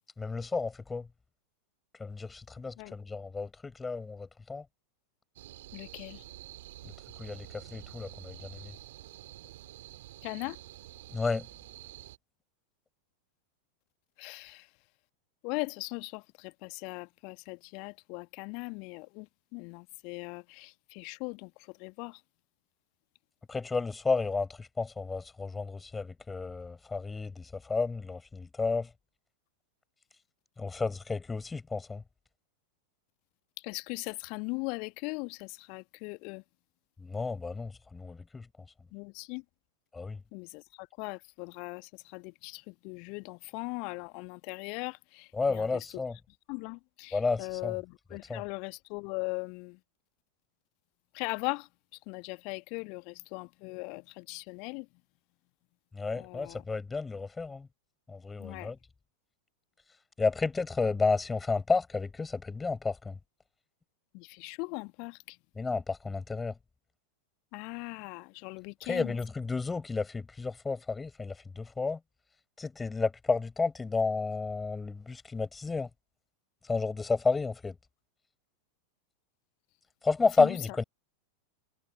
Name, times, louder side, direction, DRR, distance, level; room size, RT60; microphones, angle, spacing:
voice 1, 0.2-1.1 2.0-4.6 6.8-6.9 7.2-8.7 11.1-11.5 23.5-28.9 30.6-32.0 37.0-38.5 39.9-40.2 45.3-46.2 47.1-47.8 48.3-48.4 55.9-57.7 58.1-58.8 60.2-63.2 65.6-66.5 68.8-72.0 72.6-75.9 76.6-77.8 80.0-80.8, left 4 dB, 10° left, 5.8 m, -31 dB
sound 1, 5.4-12.2, right 15 dB, 55° right, 3.7 m, -48 dB
voice 2, 5.7-6.2 10.2-10.6 14.2-14.7 15.4-22.2 33.6-36.4 38.9-39.4 40.3-45.8 46.5-49.8 51.1-51.7 52.1-54.9 56.1-56.6 58.4-58.7 64.1-65.4 67.5-69.1 80.4-80.6, left 33 dB, 45° left, 1.5 m, -39 dB
figure-of-eight pair, 90°, 0 cm